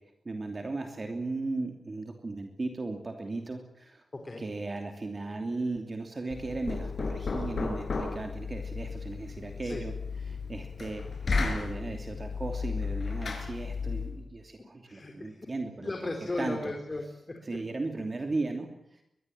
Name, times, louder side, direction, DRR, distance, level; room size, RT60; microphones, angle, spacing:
voice 1, 0.2-4.0 4.4-9.9 10.3-11.0 11.4-15.9 16.4-16.7 17.5-19.0, right 3 dB, 30° right, 4 dB, 2.9 m, -36 dB
voice 2, 4.1-4.4 9.6-9.8 14.6-15.5 15.8-17.4, left 2 dB, 25° left, 3 dB, 4.0 m, -36 dB
Knock, 6.3-14.2, left 4 dB, 50° left, 5.0 m, -34 dB
22.5 x 22.5 x 9.3 m, 0.77 s
wide cardioid pair, 135°, 0 cm